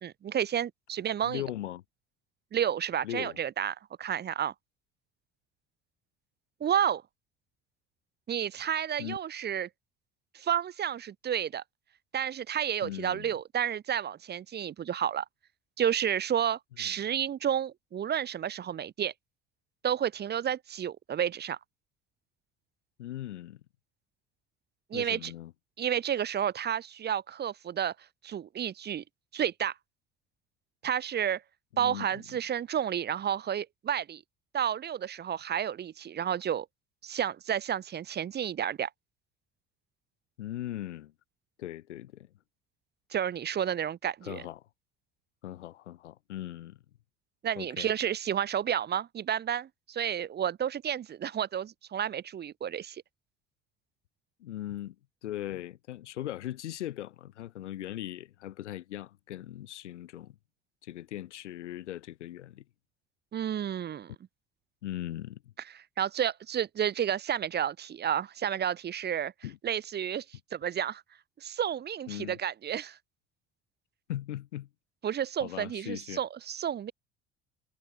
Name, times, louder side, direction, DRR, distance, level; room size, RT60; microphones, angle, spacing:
voice 1, 0.0-1.4 2.5-4.5 6.6-7.0 8.3-9.7 10.3-11.6 12.1-15.2 15.8-19.1 19.8-21.6 24.9-25.3 25.8-27.9 28.2-29.0 29.3-29.7 30.8-31.4 31.8-34.2 34.5-36.7 37.0-38.9 43.1-44.4 47.4-53.0 63.3-64.1 66.0-69.3 69.6-70.2 70.5-71.0 71.4-73.0 75.0-76.9, right 9 dB, 30° right, 0.8 m, -31 dB
voice 2, 1.2-1.8 3.0-3.4 9.0-9.2 12.8-13.3 16.8-16.9 23.0-23.6 24.9-25.5 31.7-32.2 40.4-41.1 41.6-42.3 44.2-44.7 45.4-46.8 47.6-47.9 54.4-55.0 55.2-60.4 60.8-62.6 64.8-65.5 69.4-69.6 72.1-72.4 74.1-74.7 75.4-76.2, left 13 dB, 80° left, 0.6 m, -39 dB
figure-of-eight pair, 60°, 35 cm